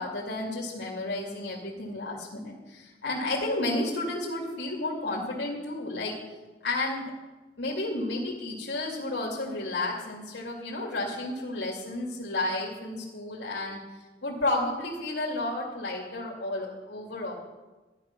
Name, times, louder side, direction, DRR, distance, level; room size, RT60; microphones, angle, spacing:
voice 1, 0.0-6.2 6.6-7.1 7.6-13.8 14.2-17.3, left 2 dB, 80° left, -4 dB, 2.4 m, -32 dB
12.5 x 11.0 x 6.0 m, 1.2 s
head